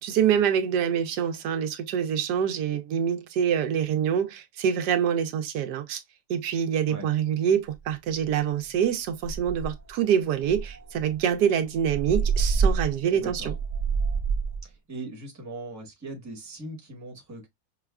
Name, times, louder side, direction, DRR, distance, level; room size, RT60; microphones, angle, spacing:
voice 1, 0.0-6.0 6.3-13.5, right 8 dB, 85° right, 1.2 m, -25 dB
sound 1, 7.7-7.8 8.2-8.5 8.8-8.9 9.2-9.9 10.4-14.6, right 5 dB, 50° right, 0.5 m, -27 dB
voice 2, 13.1-13.5 14.6-17.5, right 2 dB, 10° right, 1.0 m, -40 dB
5.5 x 2.3 x 2.2 m
omnidirectional pair, 1.7 m